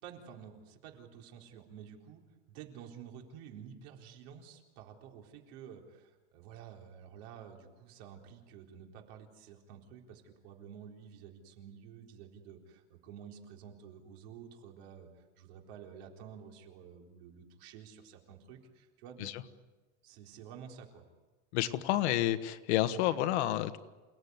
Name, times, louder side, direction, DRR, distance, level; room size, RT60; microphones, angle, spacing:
voice 1, 0.0-2.2 2.5-19.3 20.0-21.0, right 8 dB, 55° right, 2 dB, 4.2 m, -51 dB
voice 2, 21.5-23.8, left 13 dB, 65° left, 11 dB, 1.5 m, -30 dB
29.0 x 18.0 x 9.6 m, 1.2 s
supercardioid pair, 180°, 36 cm